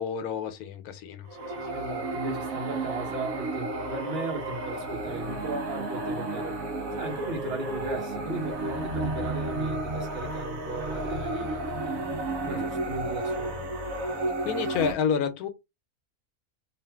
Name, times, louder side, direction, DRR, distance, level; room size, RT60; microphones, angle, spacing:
voice 1, 0.0-1.5 12.5-12.7 14.4-15.5, left 7 dB, 90° left, 1.1 m, -29 dB
sound 1, 1.3-14.9, right 2 dB, 70° right, 1.0 m, -32 dB
voice 2, 1.7-6.6 6.9-12.1 12.5-13.6, right 3 dB, 50° right, 1.1 m, -36 dB
2.6 x 2.5 x 3.4 m
omnidirectional pair, 1.5 m